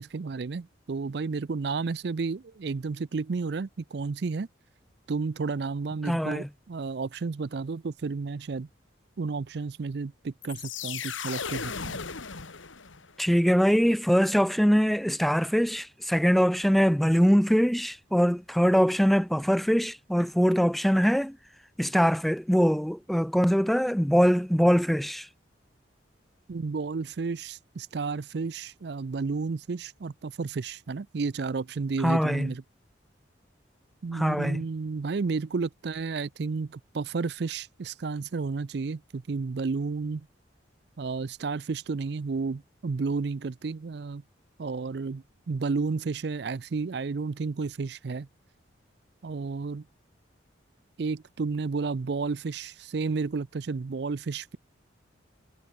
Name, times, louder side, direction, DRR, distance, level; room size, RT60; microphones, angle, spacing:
voice 1, 0.0-4.5 5.1-8.7 9.2-12.0 26.5-32.6 34.0-40.3 41.0-44.2 44.6-48.3 49.2-49.8 51.0-54.6, right 4 dB, 60° right, 0.5 m, -32 dB
voice 2, 6.0-6.5 13.2-21.4 21.8-25.3 32.0-32.5 34.1-34.6, equal, ahead, 0.4 m, -23 dB
sound 1, 10.4-13.2, left 6 dB, 85° left, 2.2 m, -36 dB
head